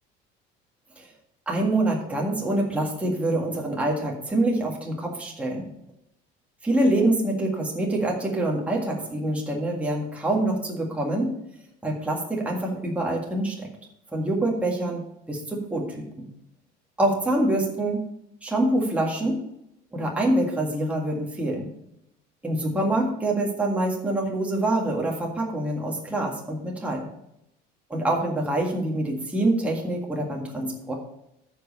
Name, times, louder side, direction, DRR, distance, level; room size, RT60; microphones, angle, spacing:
voice 1, 1.5-5.7 6.6-11.3 11.8-13.7 14.1-16.3 17.0-18.0 18.4-19.4 19.9-21.7 22.4-27.1 27.9-30.9, right 1 dB, 5° right, -2 dB, 1.8 m, -25 dB
13.5 x 5.4 x 4.1 m, 0.80 s
cardioid pair, 160°, 20 cm